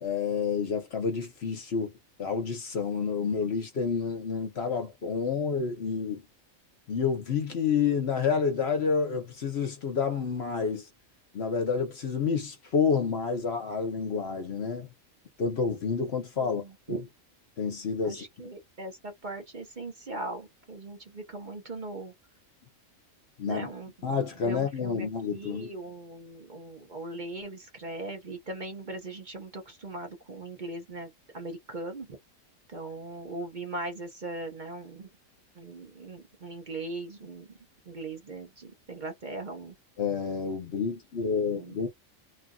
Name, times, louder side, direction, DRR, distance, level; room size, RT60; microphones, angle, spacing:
voice 1, 0.0-1.9 2.2-6.2 6.9-10.9 11.3-14.9 15.4-17.0 17.6-18.2 23.4-23.7 24.0-25.7 40.0-41.9, left 5 dB, 55° left, 1.0 m, -29 dB
voice 2, 16.4-17.0 18.0-22.1 23.5-32.2 32.7-35.1 35.6-37.5 37.9-39.7 41.5-41.8, right 2 dB, 40° right, 1.0 m, -39 dB
2.9 x 2.5 x 2.3 m
omnidirectional pair, 1.4 m